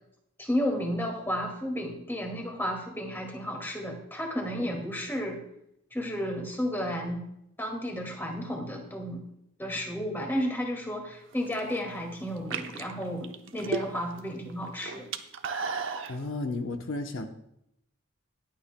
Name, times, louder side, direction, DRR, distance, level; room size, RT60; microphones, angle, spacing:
voice 1, 0.4-5.4 5.9-7.2 7.6-9.2 9.6-15.1, equal, 10° left, 1 dB, 2.1 m, -32 dB
sound 1, 11.3-11.8 12.4-14.2 14.5-16.2, right 4 dB, 70° right, 0.7 m, -34 dB
voice 2, 16.1-17.3, left 2 dB, 75° left, 5 dB, 0.8 m, -33 dB
20.5 x 8.6 x 2.2 m, 0.77 s
head